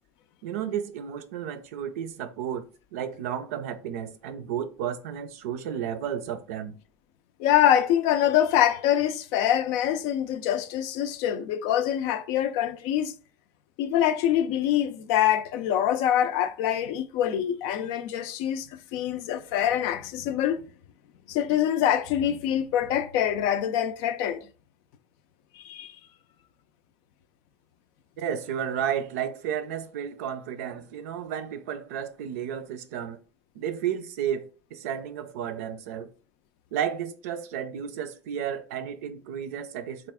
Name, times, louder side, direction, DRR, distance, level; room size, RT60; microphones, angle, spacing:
voice 1, 0.4-6.8 28.2-33.2 33.6-36.1 36.7-40.1, right 9 dB, 85° right, 0.4 m, -32 dB
voice 2, 7.4-13.1 13.8-20.7 21.3-24.4 25.6-25.9, left 10 dB, 70° left, 0.4 m, -25 dB
3.3 x 2.4 x 3.5 m
supercardioid pair, 90°, 8 cm